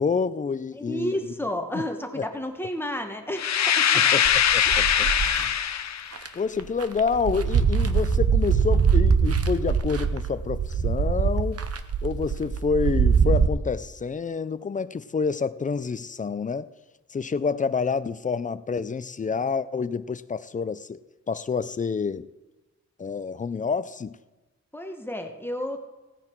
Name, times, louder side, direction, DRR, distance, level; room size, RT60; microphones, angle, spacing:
voice 1, 0.0-1.3 1.7-1.8 2.2-2.3 4.1-5.1 5.3-5.5 6.3-11.6 12.0-16.7 17.1-21.0 21.3-22.3 23.0-24.2, left 5 dB, 25° left, 0.4 m, -28 dB
voice 2, 0.7-4.2 5.0-5.1 24.7-25.8, left 1 dB, 5° left, 1.2 m, -32 dB
sound 1, 3.4-6.1, left 9 dB, 70° left, 0.6 m, -22 dB
sound 2, 4.2-5.4 6.1-6.3 6.6-13.5, right 6 dB, 55° right, 0.8 m, -23 dB
16.5 x 9.6 x 4.5 m
wide cardioid pair, 120°, 29 cm